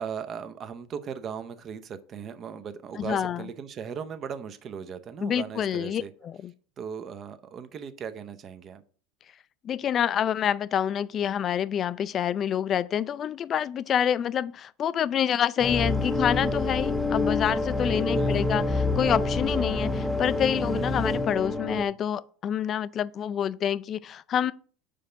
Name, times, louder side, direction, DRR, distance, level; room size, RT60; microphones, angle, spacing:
voice 1, 0.0-6.1 6.8-8.8 17.9-18.5 19.5-19.7, right 7 dB, 40° right, 0.7 m, -38 dB
voice 2, 3.0-3.4 5.2-6.5 9.6-18.6 18.9-24.5, left 9 dB, 40° left, 0.3 m, -27 dB
sound 1, 15.6-21.8, left 2 dB, ahead, 0.7 m, -27 dB
5.1 x 3.8 x 5.6 m
hypercardioid pair, 95°, 0 cm